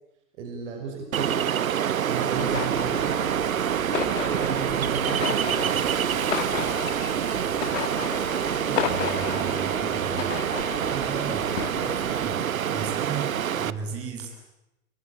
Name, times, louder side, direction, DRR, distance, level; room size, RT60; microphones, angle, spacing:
voice 1, 0.4-1.4 2.1-3.2 4.2-5.4, right 5 dB, 60° right, 2 dB, 5.8 m, -33 dB
Ocean, 1.1-13.7, right 9 dB, 75° right, 1.1 m, -26 dB
sound 1, 2.3-12.4, left 11 dB, 65° left, 1.4 m, -34 dB
voice 2, 8.7-10.3 10.8-14.3, right 5 dB, 35° right, 2 dB, 8.0 m, -35 dB
27.0 x 22.5 x 8.9 m, 0.95 s
figure-of-eight pair, 95°, 41 cm